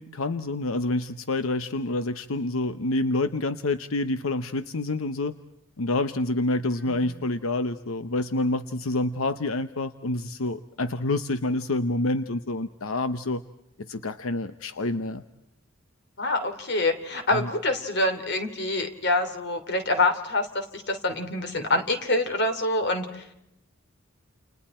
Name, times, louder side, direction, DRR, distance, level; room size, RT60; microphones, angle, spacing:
voice 1, 0.0-5.3 5.8-13.4 13.8-15.2 17.3-17.5, left 2 dB, 90° left, 10 dB, 0.9 m, -27 dB
voice 2, 16.2-23.3, left 2 dB, 55° left, 8 dB, 3.1 m, -26 dB
30.0 x 29.5 x 4.4 m, 0.82 s
head